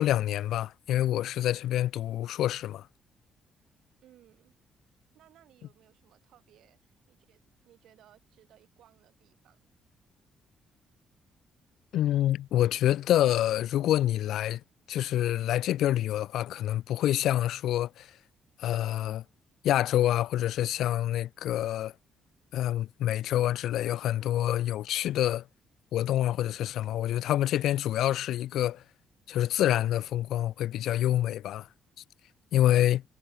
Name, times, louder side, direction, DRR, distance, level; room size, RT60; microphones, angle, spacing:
voice 1, 0.0-2.9 11.9-14.6 14.9-18.1 18.6-19.2 19.6-21.9 22.5-25.4 25.9-28.8 29.3-31.7 32.5-33.0, left 13 dB, 80° left, 0.4 m, -27 dB
voice 2, 4.0-4.5 5.1-9.7, right 12 dB, 80° right, 6.5 m, -61 dB
cardioid pair, 90°, 0 cm